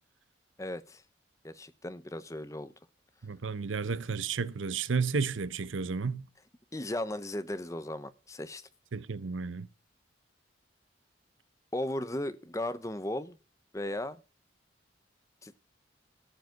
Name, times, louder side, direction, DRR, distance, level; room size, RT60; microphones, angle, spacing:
voice 1, 0.6-1.0 1.4-2.7 6.7-8.6 11.7-13.4 13.7-14.2 15.4-15.6, left 1 dB, 15° left, 0.7 m, -36 dB
voice 2, 3.2-6.3 8.9-9.7, right 5 dB, 80° right, 0.7 m, -32 dB
14.0 x 4.9 x 9.1 m
head